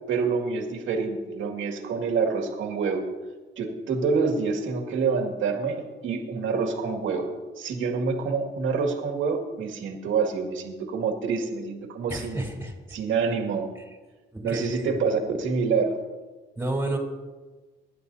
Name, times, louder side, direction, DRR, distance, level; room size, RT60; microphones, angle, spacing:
voice 1, 0.1-3.1 3.6-12.4 12.9-13.7 14.4-16.0, right 5 dB, 80° right, 2 dB, 2.2 m, -27 dB
voice 2, 12.1-12.7 14.3-15.1 16.6-17.0, right 1 dB, 10° right, 0 dB, 3.9 m, -31 dB
24.0 x 11.0 x 2.8 m, 1.3 s
cardioid pair, 90°, 20 cm